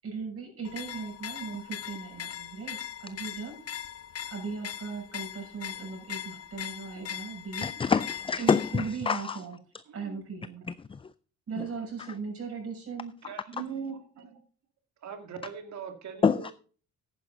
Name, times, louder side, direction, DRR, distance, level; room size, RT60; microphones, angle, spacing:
voice 1, 0.0-3.6 4.3-7.7 8.4-9.6 9.9-10.6 11.5-13.1, right 5 dB, 50° right, 6.5 m, -38 dB
sound 1, 0.6-9.0, left 10 dB, 50° left, 0.8 m, -40 dB
voice 2, 7.6-9.4 10.9-11.0 16.2-16.5, left 5 dB, 20° left, 0.4 m, -26 dB
voice 3, 9.9-10.2 13.2-14.4 15.0-16.5, right 7 dB, 65° right, 2.2 m, -40 dB
11.0 x 9.7 x 3.9 m
cardioid pair, 90°, 30 cm